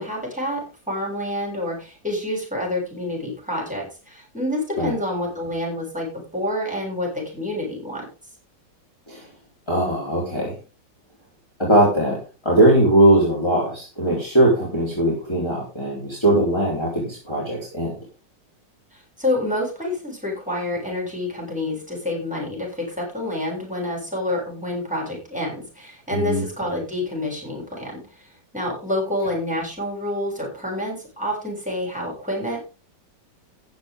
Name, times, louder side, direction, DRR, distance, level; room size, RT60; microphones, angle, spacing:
voice 1, 0.0-8.1 18.9-32.6, left 1 dB, 5° right, -1 dB, 6.9 m, -28 dB
voice 2, 9.7-10.6 11.6-18.0 26.1-26.4, right 1 dB, 15° left, -4 dB, 4.4 m, -20 dB
14.5 x 10.0 x 3.8 m, 0.32 s
omnidirectional pair, 1.9 m